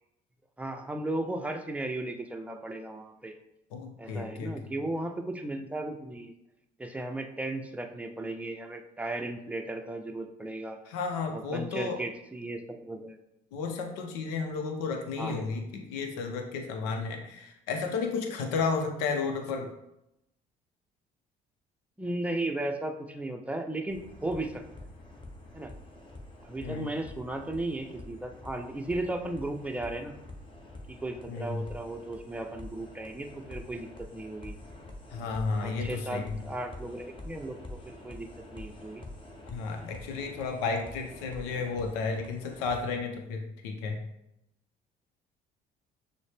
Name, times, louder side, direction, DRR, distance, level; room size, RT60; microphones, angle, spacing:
voice 1, 0.6-3.3 4.0-6.3 6.8-10.8 11.3-13.2 15.2-15.4 22.0-24.6 25.5-25.7 26.4-30.2 30.9-34.6 35.6-39.0, right 2 dB, 5° right, 4 dB, 0.6 m, -35 dB
voice 2, 3.7-4.5 10.9-12.0 13.5-19.7 26.6-26.9 31.3-31.6 35.1-36.3 39.5-44.0, left 4 dB, 85° left, 4 dB, 0.7 m, -32 dB
sound 1, 23.9-43.0, left 1 dB, 25° left, 1.0 m, -47 dB
6.2 x 2.2 x 3.3 m, 0.85 s
hypercardioid pair, 65°, 20 cm